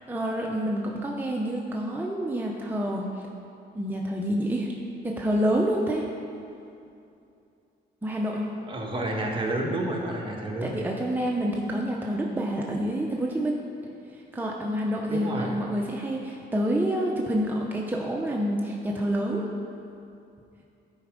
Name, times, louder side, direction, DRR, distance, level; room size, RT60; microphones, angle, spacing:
voice 1, 0.1-3.1 3.7-4.7 5.0-6.1 8.0-8.5 10.6-13.5 14.1-19.5, equal, 10° right, -1 dB, 0.7 m, -28 dB
voice 2, 8.7-10.8 15.1-15.6, right 1 dB, 25° right, -1 dB, 1.4 m, -30 dB
10.5 x 4.5 x 5.1 m, 2.7 s
cardioid pair, 90°, 20 cm